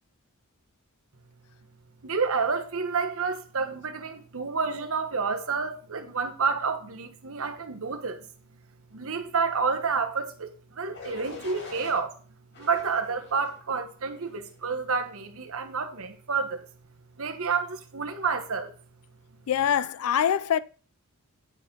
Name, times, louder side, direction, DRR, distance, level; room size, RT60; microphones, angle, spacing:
voice 1, 2.0-8.3 8.9-12.2 12.6-16.7 17.2-18.7, right 5 dB, 70° right, 1.2 m, -29 dB
sound 1, 10.9-12.0 12.5-13.6 14.2-14.5, left 3 dB, 55° left, 2.5 m, -44 dB
voice 2, 19.5-20.6, left 9 dB, 75° left, 0.4 m, -24 dB
9.7 x 4.4 x 5.3 m
head